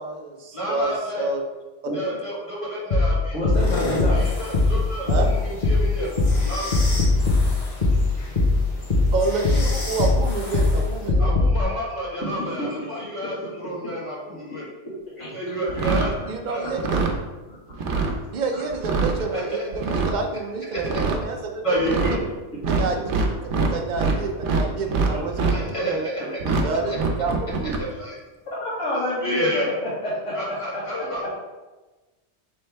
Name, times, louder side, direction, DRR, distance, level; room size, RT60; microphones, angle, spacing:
voice 1, 0.0-1.4 4.7-5.3 9.1-11.3 16.3-17.0 18.3-21.8 22.7-23.0 23.7-25.3 25.8-26.1 26.6-27.8, right 3 dB, 50° right, 3 dB, 0.6 m, -28 dB
voice 2, 0.5-1.3 1.9-3.4 4.1-6.8 11.2-14.7 15.3-16.2 16.4-16.7 16.9-17.1 19.3-19.6 20.7-20.9 21.6-22.1 25.5-26.2 26.9-27.0 27.8-28.1 28.8-29.7 30.3-31.2, equal, 30° left, -5 dB, 1.3 m, -29 dB
sound 1, 2.9-11.6, left 2 dB, 45° left, 0.9 m, -21 dB
voice 3, 3.3-4.2 12.6-13.0 15.2-15.5 16.2-16.3 16.6-16.7 17.7-18.3 18.8-18.9 25.4-25.5 28.6-29.5 29.8-30.8, left 1 dB, 85° left, -11 dB, 1.6 m, -29 dB
sound 2, 3.5-11.1, left 2 dB, 65° left, 1.4 m, -35 dB
sound 3, 15.7-16.1 16.7-17.1 17.7-18.1 18.7-19.2 19.7-20.1 20.8-21.2 21.8-22.2 22.6-24.2 24.4-25.6 26.4-26.6 26.9-27.8, right 4 dB, 85° right, 1.0 m, -23 dB
3.5 x 3.2 x 4.5 m, 1.2 s
omnidirectional pair, 1.2 m